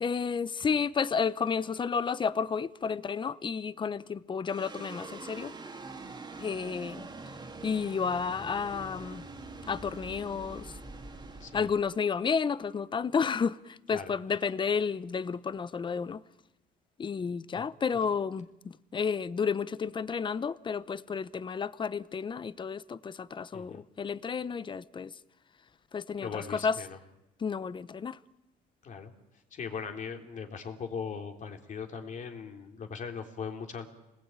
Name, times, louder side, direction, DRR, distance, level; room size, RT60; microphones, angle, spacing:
voice 1, 0.0-5.5 6.4-7.1 7.6-9.2 9.7-10.7 11.5-16.2 17.0-25.1 25.9-26.8 27.4-28.2, left 6 dB, 30° left, 0.8 m, -31 dB
sound 1, 4.4-13.0, right 3 dB, 25° right, 2.5 m, -45 dB
voice 2, 11.4-11.7 13.9-14.1 17.5-17.6 23.5-23.8 26.2-27.0 28.8-29.1 29.5-33.9, left 6 dB, 50° left, 3.4 m, -39 dB
27.5 x 20.0 x 9.0 m
cardioid pair, 110°, 17 cm